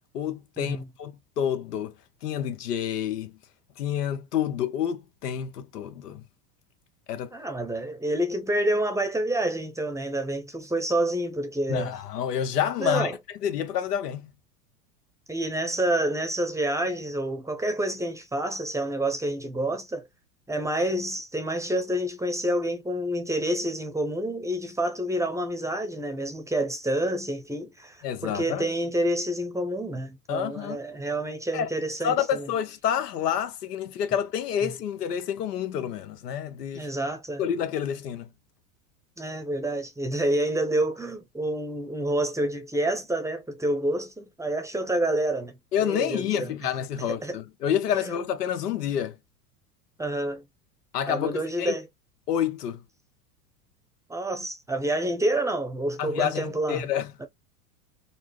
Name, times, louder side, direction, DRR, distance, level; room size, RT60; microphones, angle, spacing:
voice 1, 0.1-1.9 2.2-3.3 3.8-6.2 7.1-7.3 11.7-13.2 13.4-14.3 28.0-28.7 30.3-30.8 31.5-31.7 32.0-36.9 37.4-38.3 45.7-49.1 50.9-51.8 52.3-52.8 56.0-57.1, left 9 dB, 85° left, 1.0 m, -28 dB
voice 2, 7.3-11.9 12.8-13.2 15.3-20.0 20.5-32.5 34.6-34.7 36.7-37.4 39.2-45.5 45.8-46.5 47.1-47.4 47.9-48.2 50.0-50.4 51.1-51.9 54.1-56.9 57.2-57.3, right 1 dB, 5° right, 0.7 m, -28 dB
4.3 x 2.1 x 2.9 m
hypercardioid pair, 110°, 46 cm